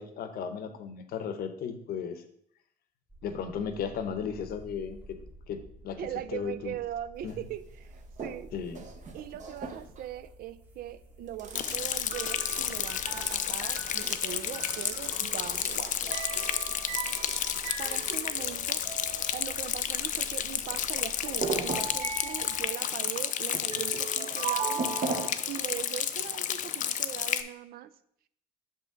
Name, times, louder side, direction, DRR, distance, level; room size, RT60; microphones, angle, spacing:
voice 1, 0.0-2.2 3.2-5.2 5.5-6.0 6.3-6.7 7.2-7.3 8.5-8.8, left 7 dB, 65° left, 9 dB, 0.8 m, -35 dB
sound 1, 3.1-22.7, right 1 dB, 10° right, 0.9 m, -52 dB
voice 2, 6.0-8.5 9.1-16.2 17.8-18.8 19.3-24.9 25.5-27.9, right 11 dB, 65° right, 15 dB, 0.4 m, -40 dB
sound 2, 7.3-7.4 7.9-8.4 8.7-10.2 11.4-19.8 20.2-20.3 20.7-20.8 21.3-25.3, right 5 dB, 45° right, 0.9 m, -37 dB
Rain, 11.5-27.4, left 10 dB, 50° left, 0.5 m, -32 dB
6.4 x 5.4 x 3.8 m, 0.69 s
cardioid pair, 110°, 17 cm